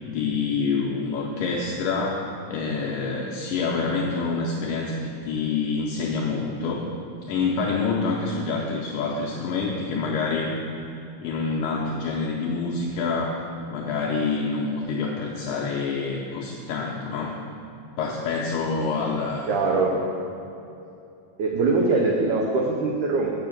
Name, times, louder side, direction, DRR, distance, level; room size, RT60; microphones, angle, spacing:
voice 1, 0.0-6.9 7.3-10.6 11.2-13.4 13.7-17.4 18.0-19.5, left 4 dB, 85° left, -2 dB, 1.9 m, -27 dB
voice 2, 19.5-20.0 21.4-23.4, right 3 dB, 85° right, 0 dB, 1.7 m, -22 dB
6.9 x 6.7 x 7.3 m, 2.7 s
omnidirectional pair, 4.5 m